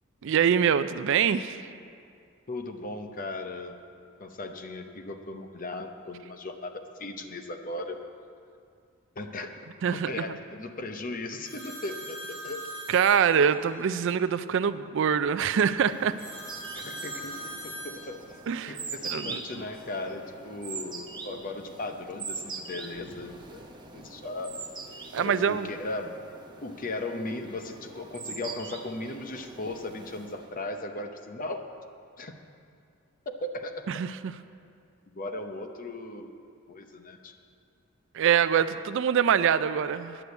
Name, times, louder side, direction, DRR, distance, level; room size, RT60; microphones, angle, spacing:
voice 1, 0.2-1.6 9.8-10.4 12.9-16.2 18.5-18.8 19.1-19.6 25.1-25.7 33.9-34.3 38.1-40.2, right 8 dB, 60° right, 13 dB, 0.4 m, -24 dB
voice 2, 2.5-3.8 4.2-8.0 9.2-9.5 9.9-12.7 16.7-17.4 17.6-18.2 18.7-23.6 23.9-24.5 25.2-26.2 26.6-31.7 32.2-32.3 33.3-33.8 35.1-36.3 36.7-37.3, left 2 dB, 40° left, 6 dB, 0.7 m, -37 dB
sound 1, 11.4-13.9 16.2-20.4 20.8-21.9 22.7-23.7, right 1 dB, 80° left, 2.4 m, -43 dB
sound 2, 15.6-30.6, right 4 dB, 20° right, 0.9 m, -42 dB
9.9 x 6.8 x 8.1 m, 2.3 s
head